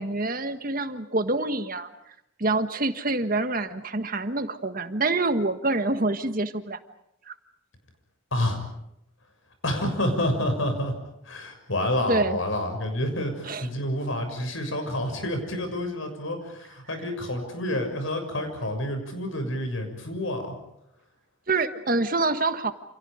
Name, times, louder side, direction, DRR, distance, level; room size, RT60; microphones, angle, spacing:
voice 1, 0.0-1.9 2.4-6.8 7.3-7.4 12.1-12.4 13.4-13.7 21.5-22.7, right 2 dB, 45° right, 9 dB, 1.5 m, -26 dB
voice 2, 8.3-8.6 9.6-10.9 11.2-20.5, left 1 dB, 90° left, 6 dB, 6.7 m, -28 dB
29.0 x 28.5 x 5.1 m, 0.81 s
head